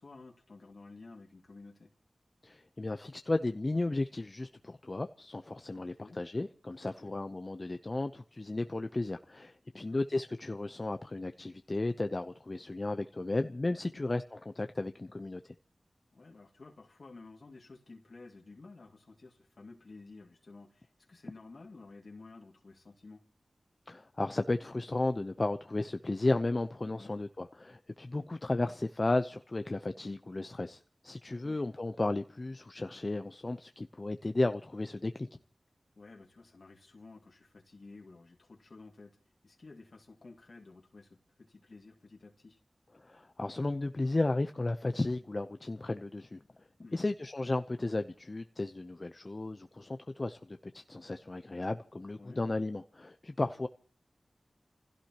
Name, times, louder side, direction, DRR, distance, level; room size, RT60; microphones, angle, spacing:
voice 1, 0.0-1.9 5.8-6.2 7.0-7.2 9.7-10.0 13.9-14.0 16.1-23.2 26.9-27.1 28.2-28.4 31.4-31.6 36.0-39.2 39.4-42.6 46.8-47.1 52.2-52.4, left 3 dB, 70° left, 2.3 m, -52 dB
voice 2, 2.4-15.5 23.9-35.3 43.0-46.4 46.9-53.7, left 2 dB, 45° left, 0.8 m, -34 dB
29.0 x 16.5 x 3.0 m
cardioid pair, 45°, 0 cm